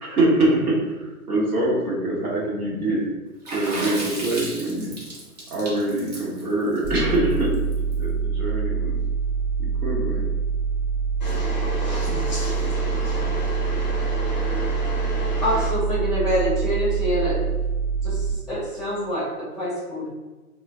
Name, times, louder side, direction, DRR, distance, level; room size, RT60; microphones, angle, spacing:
voice 1, 0.0-3.1 3.5-4.9 5.5-7.5 8.0-9.0 9.6-10.2, right 1 dB, 70° right, 1.2 m, -24 dB
Water / Splash splatter, 3.4-7.9, right 1 dB, 30° right, 0.5 m, -34 dB
sound 1, 6.8-18.3, right 5 dB, 55° right, 1.2 m, -25 dB
voice 2, 11.2-15.6, left 1 dB, 30° left, 0.5 m, -31 dB
voice 3, 15.4-17.4 18.0-20.1, equal, ahead, 0.9 m, -26 dB
2.4 x 2.2 x 3.4 m
figure-of-eight pair, 130°, 45 cm